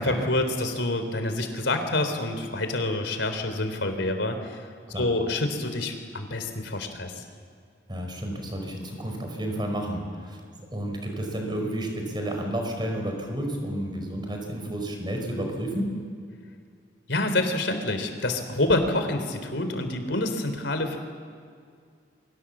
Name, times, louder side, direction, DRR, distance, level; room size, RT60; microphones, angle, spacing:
voice 1, 0.0-4.6 5.0-7.2 17.1-21.0, left 2 dB, 80° left, 7 dB, 3.6 m, -27 dB
voice 2, 7.9-10.4 10.7-15.9, right 1 dB, 25° right, 2 dB, 5.1 m, -31 dB
29.0 x 24.0 x 7.4 m, 2.2 s
head